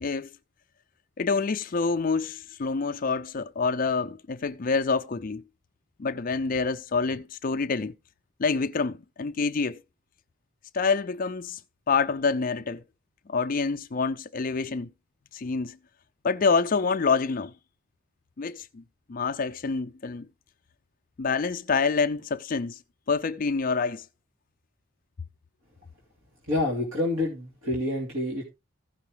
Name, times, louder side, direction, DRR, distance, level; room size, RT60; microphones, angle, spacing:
voice 1, 1.2-5.4 6.0-7.9 8.4-9.8 10.7-11.6 11.9-12.8 13.3-14.9 15.3-15.8 16.2-17.5 18.4-18.8 19.1-20.3 21.2-22.8 23.1-24.0, left 4 dB, 45° left, 0.4 m, -27 dB
voice 2, 26.5-28.5, left 2 dB, 80° right, 2.9 m, -28 dB
16.0 x 5.7 x 3.3 m
head